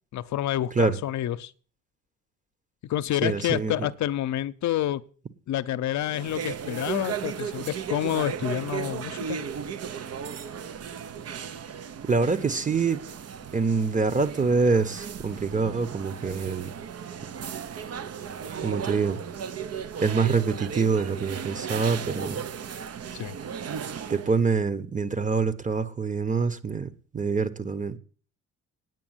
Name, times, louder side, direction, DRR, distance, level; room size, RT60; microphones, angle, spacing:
voice 1, 0.1-1.5 2.8-5.0 5.5-9.4 23.1-23.4, left 12 dB, 70° left, 0.7 m, -28 dB
voice 2, 3.2-3.9 12.0-13.0 13.5-16.7 18.6-19.2 20.0-22.4 24.1-28.0, right 4 dB, 25° right, 1.2 m, -25 dB
sound 1, 5.9-24.4, right 7 dB, 55° right, 0.9 m, -35 dB
9.4 x 7.2 x 9.0 m
cardioid pair, 90°, 30 cm